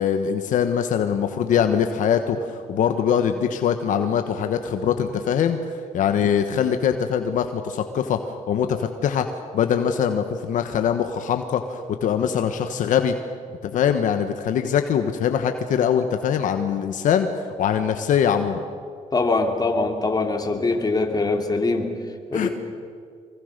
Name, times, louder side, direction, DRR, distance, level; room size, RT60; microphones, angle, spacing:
voice 1, 0.0-5.6 5.9-8.2 8.5-9.3 9.5-13.2 13.6-18.6 22.3-22.5, left 8 dB, 75° left, 7 dB, 1.3 m, -22 dB
voice 2, 19.1-21.9 22.3-22.5, left 3 dB, 30° left, 4 dB, 3.0 m, -22 dB
24.0 x 22.5 x 6.7 m, 2.2 s
cardioid pair, 80°, 13 cm